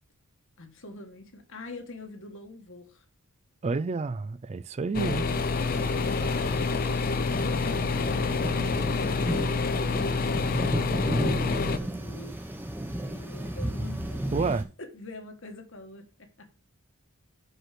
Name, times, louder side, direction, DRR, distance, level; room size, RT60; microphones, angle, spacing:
voice 1, 0.6-3.0 6.1-16.5, left 2 dB, 60° left, 1.5 m, -44 dB
voice 2, 3.6-5.3 14.3-14.6, right 4 dB, 30° right, 0.3 m, -29 dB
sound 1, 4.9-11.8, left 4 dB, 40° left, 0.5 m, -27 dB
sound 2, 5.3-14.6, right 1 dB, 10° right, 0.9 m, -34 dB
6.1 x 5.5 x 5.8 m
head